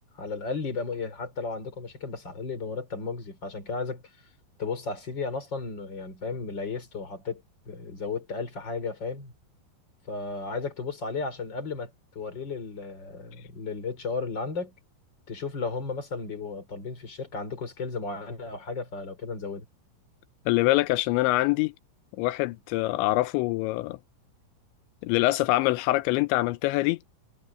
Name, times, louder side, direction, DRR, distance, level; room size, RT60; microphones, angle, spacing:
voice 1, 0.0-4.0 4.6-9.3 10.1-14.8 15.3-19.7, left 4 dB, 25° left, 4.6 m, -34 dB
voice 2, 20.5-21.7 22.2-24.0 25.0-27.0, left 19 dB, 90° left, 3.0 m, -24 dB
omnidirectional pair, 5.1 m